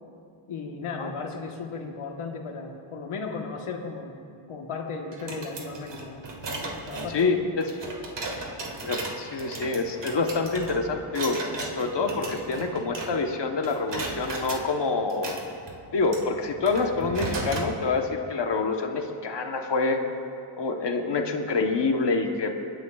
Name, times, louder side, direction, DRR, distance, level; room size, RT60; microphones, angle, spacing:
voice 1, 0.5-4.2 4.5-7.5, left 4 dB, 90° left, 2 dB, 1.3 m, -36 dB
sound 1, 5.1-13.4 13.6-14.6 15.1-17.7, right 2 dB, 55° right, 1.8 m, -36 dB
voice 2, 7.1-7.7 8.8-11.4 11.8-15.4 15.9-20.0 20.6-22.6, left 3 dB, 55° left, 4 dB, 1.1 m, -26 dB
29.0 x 10.5 x 2.3 m, 2.4 s
wide cardioid pair, 95°, 49 cm